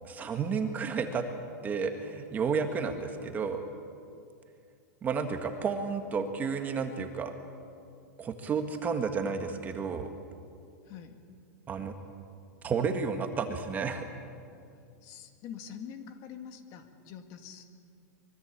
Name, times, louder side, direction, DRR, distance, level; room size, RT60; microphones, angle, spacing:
voice 1, 0.0-1.2 1.6-3.6 5.0-7.3 8.2-10.1 11.7-11.9 12.6-14.1, right 5 dB, 15° right, 6 dB, 1.7 m, -31 dB
voice 2, 10.9-11.2 15.0-17.6, left 8 dB, 35° left, 7 dB, 2.3 m, -45 dB
25.5 x 23.0 x 8.6 m, 2.4 s
supercardioid pair, 155°, 10 cm